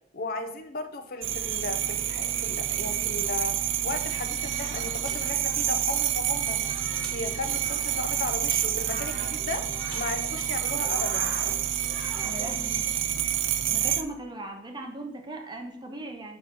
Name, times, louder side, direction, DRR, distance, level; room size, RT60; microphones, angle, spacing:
voice 1, 0.1-3.6 3.8-6.6 7.1-9.6 9.9-11.4, left 3 dB, 50° left, 7 dB, 0.6 m, -35 dB
sound 1, 1.2-14.0, right 11 dB, 85° right, 0.4 m, -28 dB
sound 2, 4.2-12.9, right 1 dB, 70° right, 2.0 m, -44 dB
sound 3, 5.1-5.6 6.3-6.4 7.0-7.7 8.5-9.0 9.9-10.4, left 1 dB, 5° left, 1.3 m, -48 dB
voice 2, 12.2-12.9 13.7-16.4, right 1 dB, 25° right, 3 dB, 0.7 m, -38 dB
7.3 x 5.4 x 3.0 m, 0.76 s
head